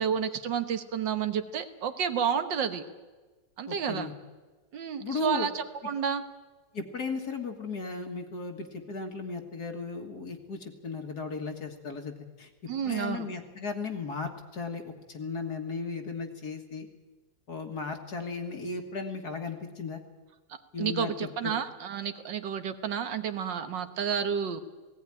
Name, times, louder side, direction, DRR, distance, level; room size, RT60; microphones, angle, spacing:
voice 1, 0.0-2.8 3.6-4.1 4.7-6.2 12.7-13.3 20.8-24.6, right 7 dB, 70° right, 9 dB, 1.9 m, -30 dB
voice 2, 3.7-4.1 5.0-5.5 6.7-12.5 12.8-16.9 17.5-20.0 20.7-21.5, left 4 dB, 55° left, 4 dB, 2.1 m, -36 dB
18.0 x 16.5 x 9.8 m, 1.2 s
omnidirectional pair, 2.0 m